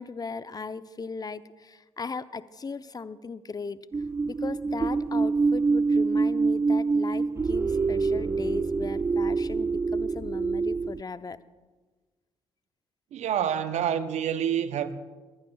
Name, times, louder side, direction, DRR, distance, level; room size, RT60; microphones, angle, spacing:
voice 1, 0.0-3.8 4.3-11.4, left 4 dB, 30° left, 0.7 m, -37 dB
sound 1, 3.9-11.0, right 4 dB, 20° right, 0.4 m, -26 dB
voice 2, 13.1-15.0, right 9 dB, 60° right, 0.8 m, -27 dB
22.0 x 15.0 x 2.4 m
hypercardioid pair, 45°, 13 cm